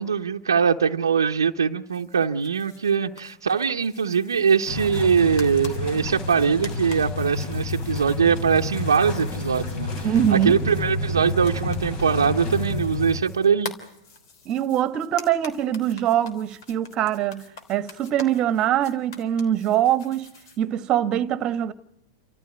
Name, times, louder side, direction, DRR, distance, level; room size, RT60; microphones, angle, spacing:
voice 1, 0.0-13.7, right 6 dB, 90° right, 0.8 m, -22 dB
sound 1, 1.9-20.6, left 4 dB, 65° left, 3.4 m, -46 dB
sound 2, 4.7-13.2, left 3 dB, 45° left, 3.8 m, -29 dB
voice 2, 10.0-10.6 14.4-20.3 20.6-21.7, right 11 dB, 35° right, 1.3 m, -23 dB
29.0 x 14.5 x 9.6 m
hypercardioid pair, 105°, 2 cm